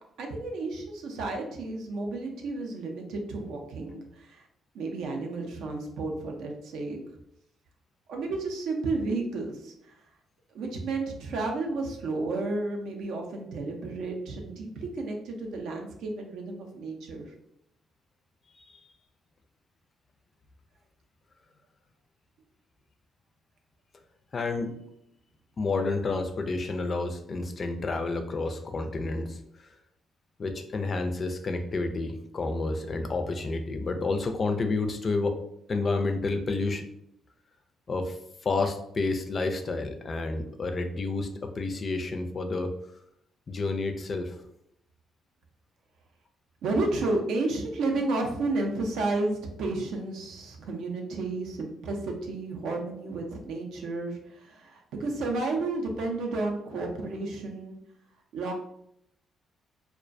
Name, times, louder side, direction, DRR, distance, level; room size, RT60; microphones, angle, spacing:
voice 1, 0.2-4.5 4.7-7.0 8.1-9.9 10.5-17.3 46.6-57.8 58.3-58.5, right 3 dB, 80° right, 2 dB, 0.4 m, -32 dB
voice 2, 24.3-24.8 25.6-29.7 30.4-35.4 35.7-36.8 37.9-38.2 38.4-42.7 43.5-44.4, left 3 dB, 40° left, 6 dB, 0.3 m, -30 dB
2.3 x 2.1 x 2.5 m, 0.76 s
cardioid pair, 90°, 0 cm